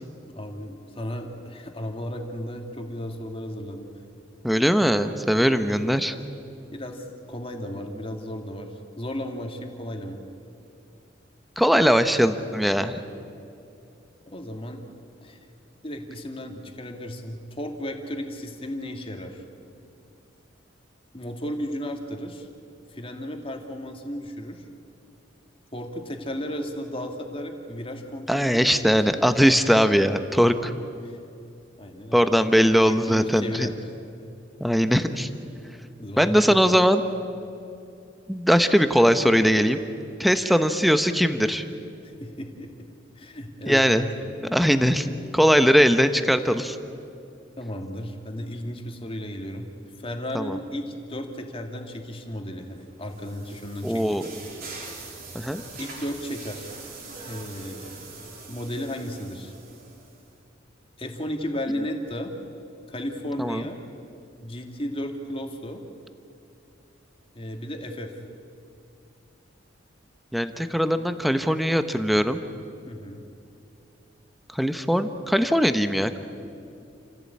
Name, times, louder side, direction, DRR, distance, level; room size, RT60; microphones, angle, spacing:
voice 1, 0.3-3.9 6.7-10.2 14.3-14.8 15.2-15.4 15.8-19.4 21.1-22.5 22.9-24.6 25.7-29.3 31.0-31.2 31.8-32.3 32.8-33.7 36.0-36.6 42.0-42.9 43.2-44.3 47.6-49.7 50.0-54.4 55.8-56.7 57.2-59.5 61.0-62.3 62.9-63.8 64.4-65.8 67.3-68.1 72.9-73.2, equal, 30° left, 3 dB, 2.3 m, -34 dB
voice 2, 4.4-6.1 11.6-13.0 28.3-30.7 32.1-33.7 34.6-35.3 36.2-37.0 38.3-39.8 40.2-41.6 43.7-44.1 44.5-46.8 50.3-50.6 53.8-54.3 55.3-55.6 63.4-63.6 70.3-72.4 74.5-76.2, equal, ahead, 9 dB, 0.9 m, -20 dB
sound 1, 52.7-60.3, right 3 dB, 50° right, 3.6 m, -43 dB
28.5 x 15.5 x 8.6 m, 2.6 s
head